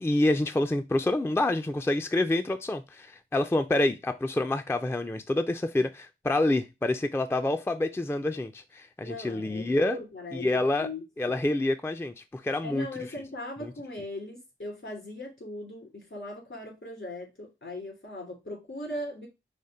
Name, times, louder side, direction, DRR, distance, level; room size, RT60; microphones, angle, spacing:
voice 1, 0.0-10.0 10.3-10.9 11.2-12.9 13.6-13.7, left 2 dB, 10° left, 0.4 m, -27 dB
voice 2, 9.0-11.4 12.6-19.3, left 1 dB, 70° left, 2.7 m, -39 dB
5.0 x 2.1 x 4.1 m
wide cardioid pair, 50°, 21 cm